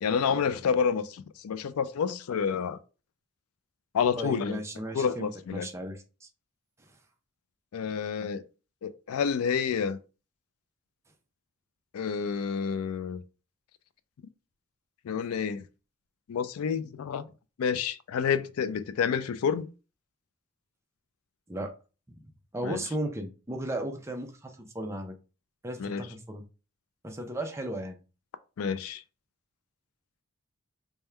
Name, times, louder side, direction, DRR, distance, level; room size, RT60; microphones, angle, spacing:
voice 1, 0.0-2.8 3.9-4.6 4.9-5.7 7.7-8.4 8.8-10.0 11.9-13.2 15.1-15.6 16.3-17.2 17.6-19.7 22.6-22.8 25.8-26.1 28.6-29.0, left 6 dB, 80° left, 0.4 m, -29 dB
voice 2, 4.2-6.3 21.5-21.7 22.1-22.2 22.5-25.2 25.6-26.4 27.0-28.0, right 1 dB, 10° right, 0.5 m, -35 dB
3.5 x 2.2 x 4.3 m
head